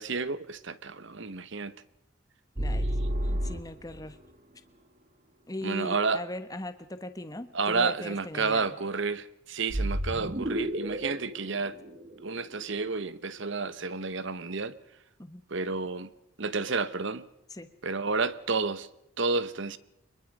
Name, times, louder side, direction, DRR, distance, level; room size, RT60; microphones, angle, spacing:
voice 1, 0.0-1.7 5.6-6.2 7.5-11.8 12.2-14.7 15.5-16.1 16.4-17.2 17.8-18.9 19.2-19.8, right 4 dB, 60° right, 1.0 m, -30 dB
voice 2, 2.6-4.2 5.5-8.7 15.2-15.4 17.5-17.7, left 1 dB, 15° left, 1.2 m, -39 dB
sound 1, 2.6-4.1 9.7-12.8, equal, 40° right, 1.4 m, -31 dB
24.0 x 21.5 x 5.4 m
head